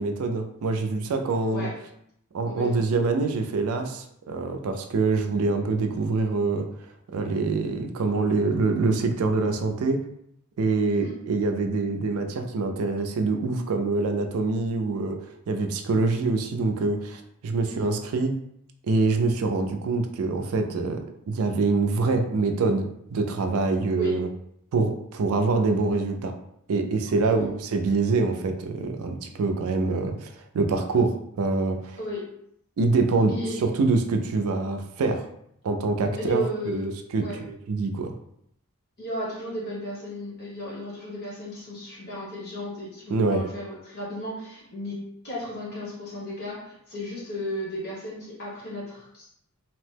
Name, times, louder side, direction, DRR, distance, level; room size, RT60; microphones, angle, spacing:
voice 1, 0.0-1.7 2.3-6.7 7.1-10.0 10.6-15.2 15.5-18.3 18.9-21.0 21.3-24.3 24.7-26.3 26.7-32.0 32.8-33.3 33.6-35.2 35.6-36.4 36.7-38.1 43.1-43.4, right 3 dB, 70° right, 5 dB, 0.4 m, -25 dB
voice 2, 2.5-2.9 10.9-11.2 17.6-17.9 24.0-24.1 27.1-27.5 32.0-32.3 33.3-33.6 36.2-37.4 39.0-49.3, equal, 45° left, -6 dB, 1.1 m, -34 dB
2.8 x 2.1 x 3.2 m, 0.73 s
head